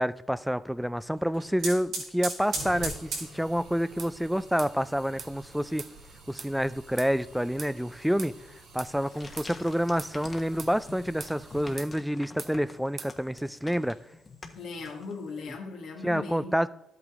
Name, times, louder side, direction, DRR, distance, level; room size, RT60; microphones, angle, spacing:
voice 1, 0.0-5.9 6.3-8.4 8.7-14.0 16.0-16.7, equal, ahead, 0.4 m, -28 dB
sound 1, 1.1-11.7, right 3 dB, 85° right, 4.0 m, -41 dB
sound 2, 4.0-4.1 4.6-4.7 5.2-5.3 5.8-5.9 6.4-6.5 7.0-7.1 7.6-7.7 8.2-8.3 8.8-8.9 9.4-9.5 10.0-10.2 10.6-10.8 11.2-11.4 11.8-11.9 12.4-12.5 13.0-13.1, right 5 dB, 45° right, 0.8 m, -41 dB
sound 3, 8.9-15.4, left 3 dB, 30° left, 1.2 m, -48 dB
voice 2, 14.5-16.6, left 4 dB, 80° left, 1.7 m, -38 dB
12.0 x 8.3 x 3.6 m
cardioid pair, 90°, 0 cm